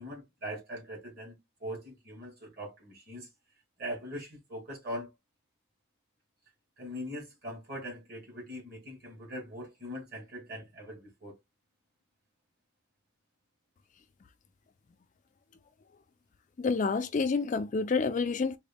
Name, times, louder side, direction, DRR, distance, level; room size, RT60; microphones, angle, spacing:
voice 1, 0.0-3.3 3.8-5.1 6.8-11.4, equal, 45° right, 1.6 m, -41 dB
voice 2, 16.6-18.6, left 4 dB, 35° left, 0.3 m, -28 dB
3.8 x 2.1 x 3.4 m
head